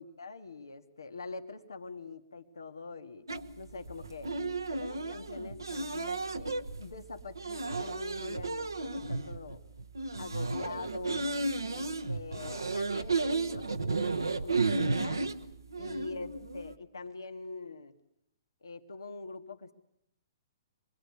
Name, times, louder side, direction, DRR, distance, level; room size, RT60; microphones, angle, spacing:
voice 1, 0.0-3.3 3.6-4.3 4.7-9.6 10.2-11.3 11.7-15.3 15.7-18.0 18.6-19.7, left 3 dB, 75° left, 7 dB, 2.1 m, -44 dB
sound 1, 3.3-16.8, right 3 dB, 80° right, 1.3 m, -34 dB
26.5 x 22.0 x 9.8 m, 0.77 s
figure-of-eight pair, 120°, 2 cm